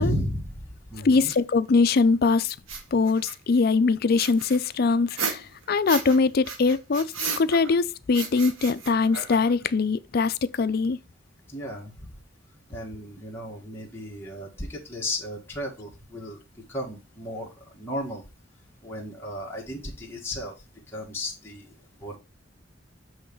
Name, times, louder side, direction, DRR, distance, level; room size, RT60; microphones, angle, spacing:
voice 1, 0.0-1.3 11.5-12.2 12.7-16.4 16.7-18.2 18.8-20.5 20.9-21.7 22.0-22.2, equal, 10° left, 1.7 m, -34 dB
voice 2, 1.0-2.6 2.9-11.0, left 4 dB, 50° left, 0.4 m, -22 dB
sound 1, 1.3-1.4 2.6-3.6 4.2-6.2 6.4-7.8 8.1-9.6, right 5 dB, 75° right, 1.2 m, -34 dB
7.9 x 3.2 x 5.3 m
head